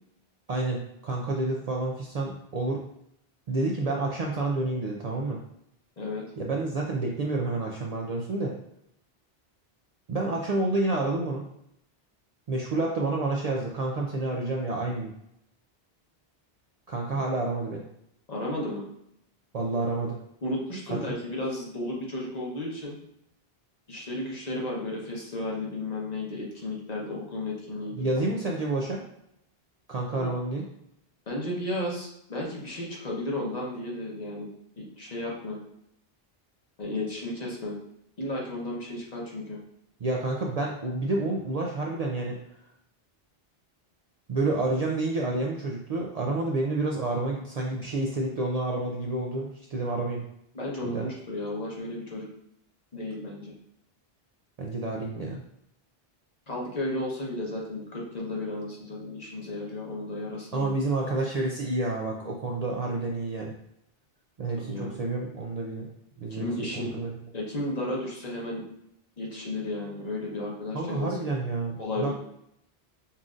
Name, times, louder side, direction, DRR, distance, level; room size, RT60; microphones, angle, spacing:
voice 1, 0.5-2.8 3.5-5.4 6.4-8.5 10.1-11.4 12.5-15.1 16.9-17.9 19.5-20.2 28.0-29.0 29.9-30.6 40.0-42.4 44.3-50.2 50.8-51.1 54.6-55.4 60.5-63.5 64.4-65.9 66.2-67.1 70.7-72.1, right 2 dB, 55° right, -1 dB, 0.5 m, -29 dB
voice 2, 18.3-18.8 20.4-23.0 23.9-28.0 30.1-30.3 31.3-34.5 34.8-35.6 36.8-37.8 38.2-39.6 50.5-52.3 52.9-53.5 56.5-60.7 64.6-64.9 66.3-67.0 67.3-68.6 69.2-71.1 71.8-72.1, left 1 dB, 45° left, -3 dB, 0.9 m, -33 dB
5.5 x 2.5 x 2.4 m, 0.76 s
omnidirectional pair, 1.0 m